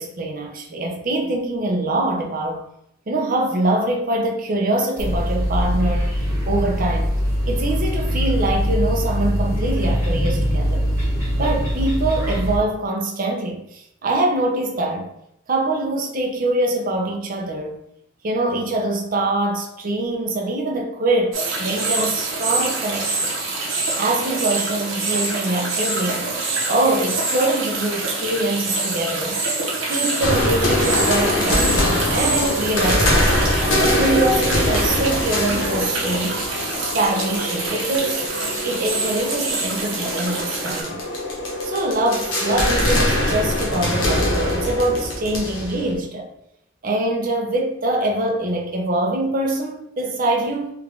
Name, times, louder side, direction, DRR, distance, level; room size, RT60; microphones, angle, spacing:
voice 1, 0.0-2.6 3.1-6.1 6.5-7.1 7.5-10.8 11.4-15.1 15.5-17.8 18.2-23.3 24.0-26.3 26.7-29.4 29.8-33.4 33.9-36.5 36.8-38.2 38.6-41.0 41.6-46.3 46.8-50.7, right 2 dB, 45° right, 1 dB, 0.6 m, -23 dB
sound 1, 5.0-12.6, equal, 15° right, 1.4 m, -22 dB
sound 2, 21.3-40.8, right 3 dB, 75° right, 0.9 m, -26 dB
sound 3, 30.2-45.9, left 1 dB, 75° left, 0.9 m, -23 dB
3.3 x 2.4 x 3.3 m, 0.75 s
head